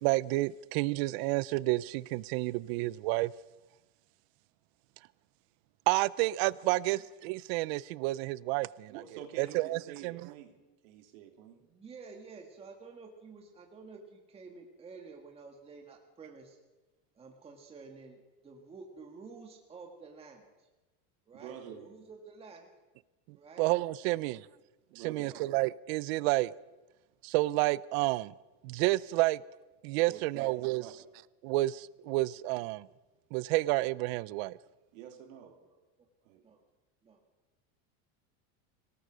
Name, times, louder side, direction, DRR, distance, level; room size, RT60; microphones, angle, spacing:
voice 1, 0.0-3.3 5.9-8.9 9.4-10.2 23.3-24.4 25.0-26.5 27.2-28.3 28.6-29.4 29.8-30.8 31.4-32.9 33.3-34.6, right 20 dB, 50° right, 0.6 m, -30 dB
voice 2, 8.9-11.7 21.3-21.9 24.9-25.3 30.1-31.1 34.9-35.6 36.2-36.4, right 9 dB, 70° right, 3.2 m, -48 dB
voice 3, 11.6-16.6 17.2-20.7 21.3-22.7 23.3-23.7 24.0-24.3 25.2-25.4 35.4-35.6 36.0-36.1 36.4-36.6 37.0-37.2, right 4 dB, 15° right, 1.8 m, -51 dB
25.5 x 18.5 x 6.3 m
supercardioid pair, 170°, 41 cm